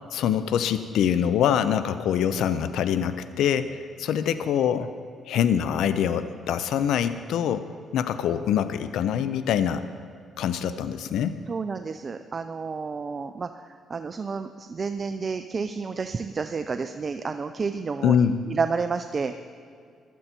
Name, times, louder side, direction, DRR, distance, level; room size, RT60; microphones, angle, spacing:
voice 1, 0.1-4.9 5.3-7.7 7.9-9.9 10.4-11.4 18.0-18.4, left 9 dB, 80° left, 12 dB, 0.6 m, -24 dB
voice 2, 11.5-19.3, right 4 dB, 40° right, 9 dB, 0.5 m, -30 dB
15.5 x 12.0 x 4.4 m, 2.3 s
cardioid pair, 90°, 0 cm